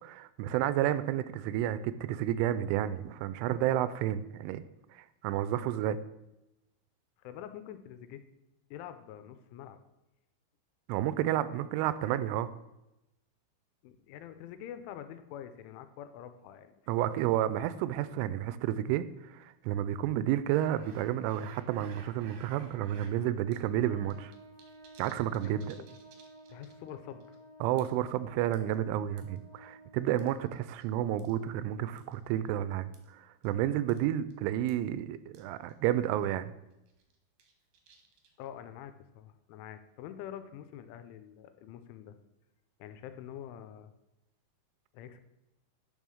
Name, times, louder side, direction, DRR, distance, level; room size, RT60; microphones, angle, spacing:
voice 1, 0.0-4.6 4.9-6.0 10.9-12.5 16.9-24.3 25.0-25.8 27.6-36.5, right 12 dB, 85° right, 14 dB, 3.0 m, -31 dB
voice 2, 7.2-8.2 8.7-9.8 13.8-17.0 25.4-25.9 26.5-27.4 38.4-42.2 42.8-43.9 44.9-45.2, left 10 dB, 85° left, 10 dB, 3.0 m, -46 dB
sound 1, 20.5-23.2 23.5-23.6 23.9-26.9 27.2-27.4 27.8-28.1 28.5-29.4 30.2-30.9 31.2-31.4 32.0-32.2 32.9-33.1 33.4-33.6 33.9-34.1 34.3-34.4 34.7-34.8 35.3-35.4 35.7-35.8 36.1-36.4 36.9-38.5, right 5 dB, 65° right, 2.2 m, -57 dB
Trumpet, 23.8-30.3, right 1 dB, 50° left, 2.0 m, -54 dB
9.1 x 5.5 x 6.3 m, 0.92 s
omnidirectional pair, 5.6 m